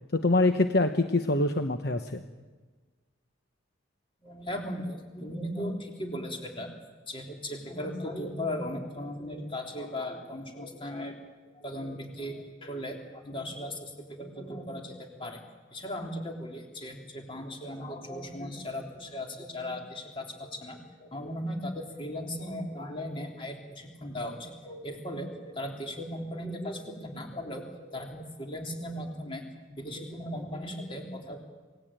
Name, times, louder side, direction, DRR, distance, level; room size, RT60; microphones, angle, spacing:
voice 1, 0.1-2.2, left 2 dB, 55° left, 7 dB, 1.1 m, -25 dB
voice 2, 4.2-6.7 7.1-11.2 11.5-15.4 15.7-29.4 29.7-31.4, left 1 dB, 25° left, 2 dB, 3.8 m, -37 dB
27.5 x 19.0 x 9.0 m, 1.4 s
head